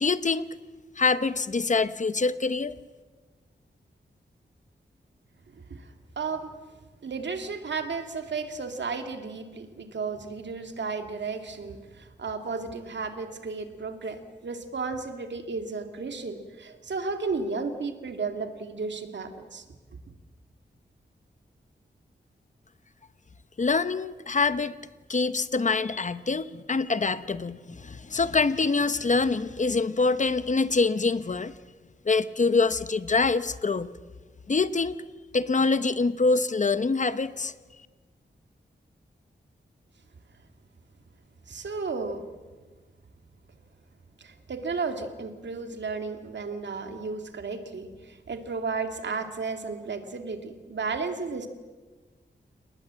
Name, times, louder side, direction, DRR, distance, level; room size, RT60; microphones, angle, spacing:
voice 1, 0.0-0.5 1.0-2.8 23.6-24.8 25.1-31.5 32.0-33.9 34.5-35.0 35.3-37.5, left 4 dB, 40° left, 13 dB, 0.9 m, -25 dB
voice 2, 5.5-6.5 7.0-19.6 41.5-42.2 44.2-51.5, right 4 dB, 75° right, 6 dB, 2.4 m, -33 dB
29.5 x 19.5 x 7.6 m, 1.3 s
wide cardioid pair, 130°, 19 cm